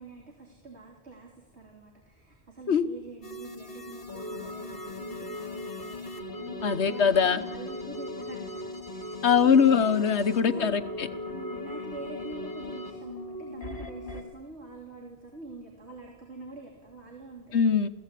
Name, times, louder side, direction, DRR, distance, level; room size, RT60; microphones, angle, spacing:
voice 1, 0.0-9.5 10.1-10.7 11.3-17.6, right 3 dB, 85° right, -1 dB, 3.6 m, -46 dB
sound 1, 3.2-14.2, left 1 dB, 60° left, 2.7 m, -38 dB
voice 2, 6.6-7.4 9.2-11.1 17.5-17.9, left 6 dB, 85° left, 12 dB, 1.4 m, -22 dB
29.5 x 16.5 x 8.4 m, 1.3 s
omnidirectional pair, 1.1 m